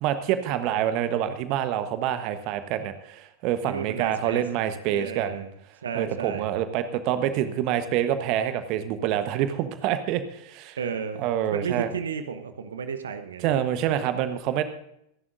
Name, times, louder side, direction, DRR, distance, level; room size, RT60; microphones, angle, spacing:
voice 1, 0.0-5.4 5.9-10.8 11.2-11.9 13.4-14.6, right 10 dB, 40° right, 10 dB, 1.1 m, -26 dB
voice 2, 3.7-4.4 4.9-5.5 5.8-6.5 10.8-13.5, right 6 dB, 65° right, 9 dB, 1.1 m, -33 dB
27.0 x 11.0 x 2.6 m, 0.76 s
figure-of-eight pair, 90°, 0 cm